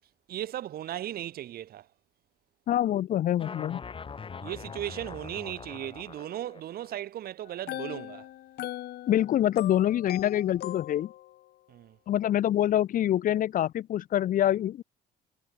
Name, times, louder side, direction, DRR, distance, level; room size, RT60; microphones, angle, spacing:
voice 1, 0.3-1.9 4.4-8.3 11.7-12.0, right 12 dB, 65° right, 3.7 m, -36 dB
voice 2, 2.7-3.8 9.1-11.1 12.1-14.8, left 11 dB, 55° left, 0.7 m, -25 dB
sound 1, 3.4-7.0, left 5 dB, 30° left, 6.2 m, -42 dB
sound 2, 7.5-11.4, left 14 dB, 70° left, 7.7 m, -40 dB
cardioid pair, 110°, 17 cm